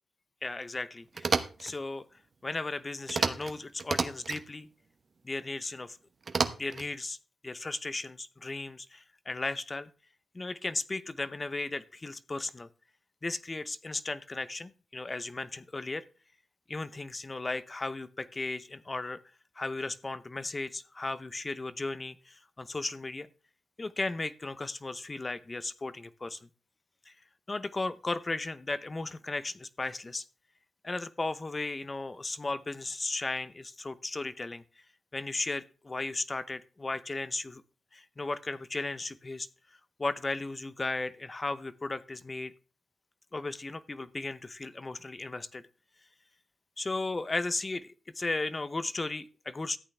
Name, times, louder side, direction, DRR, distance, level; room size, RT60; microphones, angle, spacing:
voice 1, 0.4-2.1 2.4-4.7 5.2-6.0 6.6-7.2 7.4-9.9 10.3-12.7 13.2-16.0 16.7-19.2 19.6-23.3 23.8-26.4 27.1-27.2 27.5-30.2 30.8-34.6 35.1-37.6 37.9-39.5 40.0-42.5 43.3-45.6 46.8-49.8, left 3 dB, 25° left, 15 dB, 0.7 m, -35 dB
sound 1, 1.1-1.7 3.1-3.5 3.8-4.4 6.3-6.9, right 4 dB, 45° right, 1.0 m, -30 dB
13.5 x 8.7 x 3.3 m, 0.35 s
wide cardioid pair, 105°, 0 cm